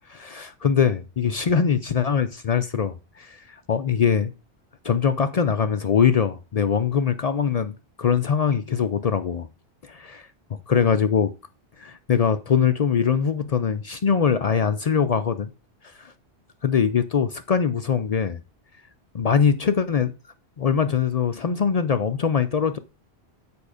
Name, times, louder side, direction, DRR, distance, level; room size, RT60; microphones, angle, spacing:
voice 1, 0.1-4.3 4.8-9.5 9.8-11.3 11.8-15.5 15.8-16.1 16.6-18.4 19.1-20.1 20.6-22.8, left 7 dB, 50° left, 0.4 m, -22 dB
6.9 x 5.1 x 4.8 m
omnidirectional pair, 1.1 m